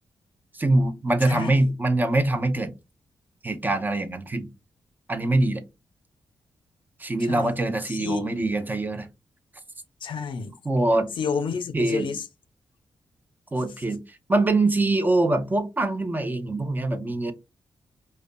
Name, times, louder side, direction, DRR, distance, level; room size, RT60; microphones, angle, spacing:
voice 1, 0.5-2.7 3.4-4.5 5.1-5.6 7.0-9.1 10.6-11.1 11.7-12.1 13.5-14.0 14.3-17.3, right 2 dB, 20° right, 0.5 m, -23 dB
voice 2, 1.2-1.6 7.2-7.6 7.9-8.3 10.0-10.5 11.2-12.3, left 5 dB, 70° left, 0.5 m, -30 dB
2.4 x 2.2 x 2.5 m
cardioid pair, 95°, 9 cm